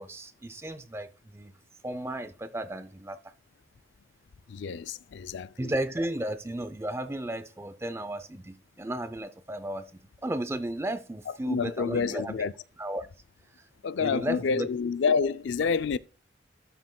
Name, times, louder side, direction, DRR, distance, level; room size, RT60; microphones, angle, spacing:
voice 1, 0.0-1.5 1.8-3.2 5.6-9.9 10.2-12.3 12.8-13.1 14.0-14.7, right 1 dB, 15° right, 0.4 m, -34 dB
voice 2, 4.5-5.7 11.5-12.5 13.8-16.0, left 5 dB, 70° left, 0.4 m, -28 dB
12.0 x 5.9 x 2.2 m
head